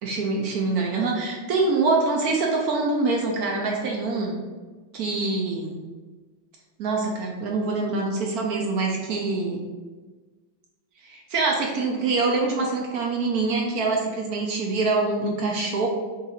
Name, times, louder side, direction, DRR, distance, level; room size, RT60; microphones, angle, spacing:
voice 1, 0.0-4.4 4.9-5.8 6.8-9.6 11.0-15.9, right 3 dB, 70° right, 0 dB, 0.9 m, -25 dB
6.5 x 3.2 x 2.4 m, 1.3 s
omnidirectional pair, 2.2 m